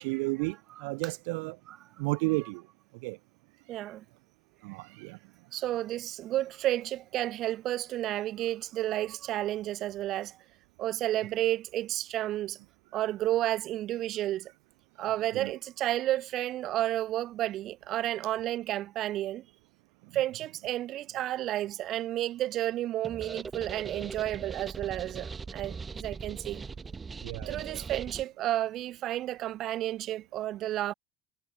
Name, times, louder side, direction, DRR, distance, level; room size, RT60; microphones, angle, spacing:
voice 1, 0.0-1.6 2.0-2.6 3.0-3.2 4.6-5.2 12.9-13.0 15.3-15.5 27.2-27.9, right 29 dB, 90° right, 0.6 m, -33 dB
voice 2, 3.7-4.0 5.5-10.4 10.8-12.6 12.9-14.5 15.0-19.5 20.1-26.6 27.5-30.9, right 14 dB, 55° right, 2.2 m, -31 dB
sound 1, 23.0-28.2, right 4 dB, 20° right, 3.3 m, -40 dB
cardioid pair, 130°, 0 cm